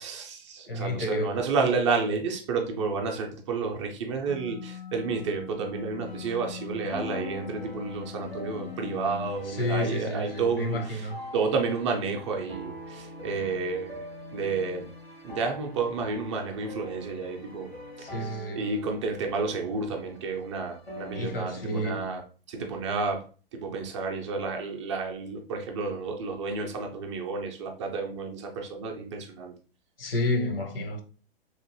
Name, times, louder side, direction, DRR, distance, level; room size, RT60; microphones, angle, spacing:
voice 1, 0.0-11.1 11.3-14.9 15.2-17.7 18.0-18.2 18.5-22.2 22.5-23.2 23.5-29.5, right 4 dB, 30° right, 0.5 m, -31 dB
voice 2, 0.7-1.4 9.5-11.2 18.0-18.7 21.1-22.0 30.0-31.0, left 1 dB, 70° left, 0.8 m, -30 dB
sound 1, 4.3-9.3, left 7 dB, 40° left, 0.4 m, -42 dB
sound 2, 6.0-22.2, left 1 dB, 90° left, 1.3 m, -44 dB
3.0 x 2.5 x 2.7 m
figure-of-eight pair, 110°, 30 cm